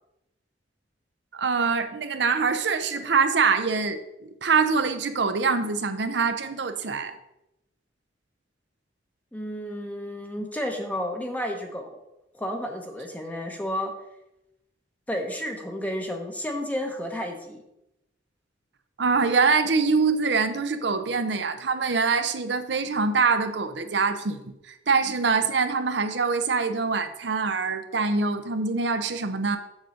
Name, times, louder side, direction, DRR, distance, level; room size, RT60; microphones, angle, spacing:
voice 1, 1.3-4.0 4.4-7.1 19.0-29.6, right 4 dB, 65° right, 9 dB, 0.7 m, -24 dB
voice 2, 9.3-11.9 12.3-13.9 15.1-17.6, equal, 10° left, 3 dB, 0.9 m, -31 dB
7.2 x 3.8 x 6.4 m, 0.88 s
head